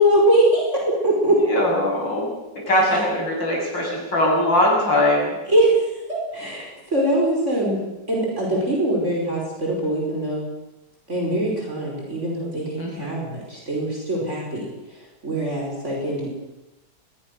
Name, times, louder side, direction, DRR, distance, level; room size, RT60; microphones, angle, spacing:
voice 1, 0.0-1.4 5.5-10.4 11.1-16.3, right 1 dB, 40° right, -2 dB, 5.6 m, -22 dB
voice 2, 1.4-2.3 2.7-5.4 12.8-13.3, left 1 dB, 80° left, -2 dB, 8.8 m, -21 dB
23.0 x 21.0 x 6.7 m, 1.0 s
omnidirectional pair, 2.0 m